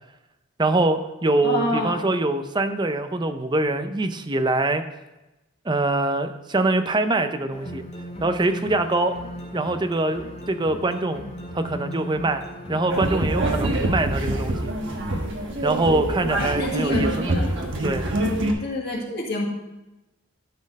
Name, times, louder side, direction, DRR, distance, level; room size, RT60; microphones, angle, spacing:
voice 1, 0.6-4.8 5.7-7.8 8.2-9.1 9.5-11.2 11.5-12.4 12.7-14.7 15.6-17.3 17.8-18.0, right 2 dB, 20° right, 9 dB, 0.5 m, -24 dB
voice 2, 1.4-1.9 16.4-17.5 18.6-19.5, left 1 dB, 50° left, -2 dB, 1.9 m, -27 dB
sound 1, 7.5-13.2, equal, 30° left, 1.8 m, -37 dB
sound 2, 12.9-18.5, right 1 dB, 60° right, 1.2 m, -25 dB
12.0 x 4.4 x 5.2 m, 1.0 s
head